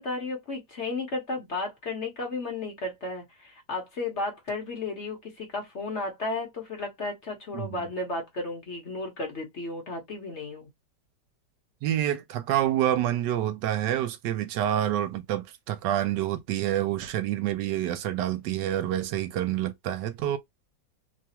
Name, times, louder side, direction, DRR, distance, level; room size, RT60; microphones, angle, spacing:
voice 1, 0.0-10.7, left 3 dB, 45° left, 1.1 m, -33 dB
voice 2, 11.8-20.4, right 12 dB, 80° right, 1.2 m, -27 dB
3.2 x 2.3 x 2.8 m
omnidirectional pair, 1.9 m